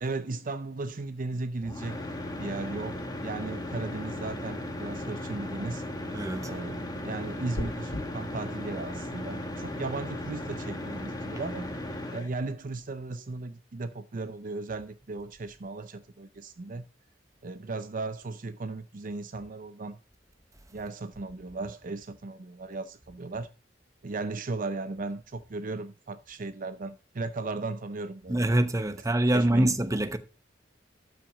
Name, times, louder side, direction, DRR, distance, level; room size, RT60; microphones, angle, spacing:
voice 1, 0.0-2.0 2.3-5.8 6.4-11.7 12.1-16.9 17.4-20.0 20.7-23.5 24.0-28.5 29.0-29.1 29.3-29.8, right 3 dB, 45° right, 0.6 m, -36 dB
sound 1, 1.6-12.3, left 1 dB, 20° left, 1.8 m, -36 dB
voice 2, 6.1-6.5 28.3-30.2, right 1 dB, 15° right, 0.9 m, -25 dB
sound 2, 7.5-8.0, left 1 dB, 75° left, 2.3 m, -34 dB
12.5 x 6.0 x 4.8 m
head